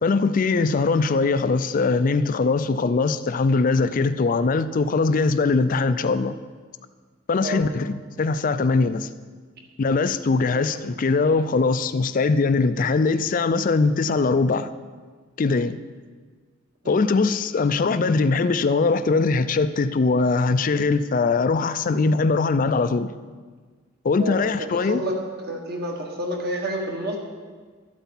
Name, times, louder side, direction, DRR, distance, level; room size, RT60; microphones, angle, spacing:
voice 1, 0.0-6.4 7.3-9.1 9.8-14.7 15.4-15.8 16.9-23.1 24.0-25.0, left 4 dB, 40° left, 0.4 m, -21 dB
voice 2, 24.2-27.2, equal, 50° right, 1.5 m, -29 dB
13.0 x 8.1 x 4.1 m
head